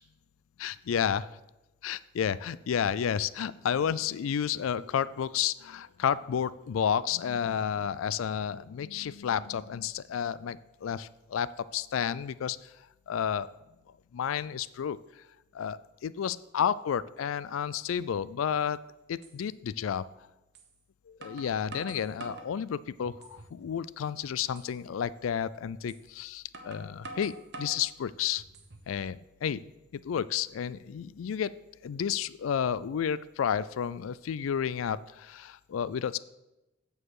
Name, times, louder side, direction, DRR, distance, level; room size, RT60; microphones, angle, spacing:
voice 1, 0.6-1.3 1.8-12.7 13.1-13.5 14.1-15.0 15.5-18.8 19.1-20.0 21.1-28.4 28.9-29.6 30.0-31.5 31.8-36.2, left 8 dB, 85° left, 18 dB, 0.3 m, -31 dB
sound 1, 19.2-19.4 20.5-20.7 21.2-22.5 23.0-23.6 24.0-24.1 24.5-24.7 25.9-26.0 26.5-27.9 28.4-28.9, right 2 dB, 55° right, 1.0 m, -45 dB
8.7 x 4.7 x 6.5 m, 0.99 s
head